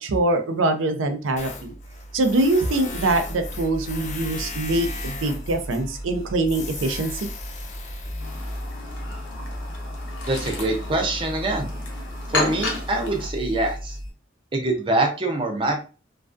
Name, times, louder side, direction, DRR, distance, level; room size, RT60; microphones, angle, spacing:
voice 1, 0.0-1.7 2.1-7.3, right 2 dB, 90° right, 7 dB, 0.4 m, -23 dB
Tools, 1.4-9.6, left 3 dB, 40° left, 0.3 m, -38 dB
sound 1, 2.9-14.1, equal, 45° right, 0.8 m, -35 dB
Chirp tweet, 8.2-13.3, left 2 dB, 85° left, 0.8 m, -32 dB
voice 2, 10.3-11.7 12.3-14.0 14.5-15.9, right 2 dB, 25° right, 3 dB, 0.4 m, -24 dB
2.3 x 2.2 x 2.4 m, 0.33 s
head